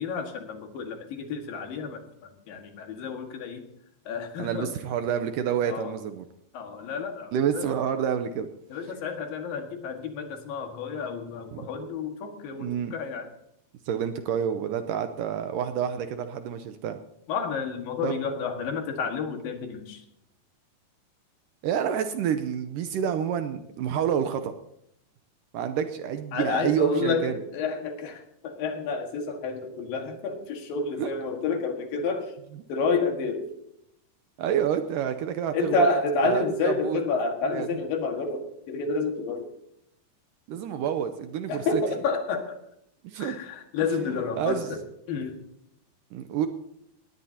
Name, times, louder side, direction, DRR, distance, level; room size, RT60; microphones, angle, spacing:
voice 1, 0.0-2.0 2.5-3.6 4.1-4.7 5.6-5.9 6.5-7.7 8.7-13.3 17.3-20.0 26.3-32.3 32.7-33.5 35.5-39.5 41.5-42.6 43.2-44.8 45.1-45.4, left 4 dB, 70° left, 4 dB, 3.5 m, -30 dB
voice 2, 4.4-6.3 7.3-8.5 11.5-11.7 12.6-12.9 13.9-17.0 18.0-18.2 21.6-24.5 25.5-27.4 31.0-31.1 34.4-35.9 36.2-37.0 37.5-37.7 40.5-41.8 43.0-43.4 44.0-44.8 46.1-46.5, right 8 dB, 75° right, 8 dB, 2.1 m, -28 dB
19.0 x 18.0 x 2.9 m, 0.76 s
omnidirectional pair, 4.4 m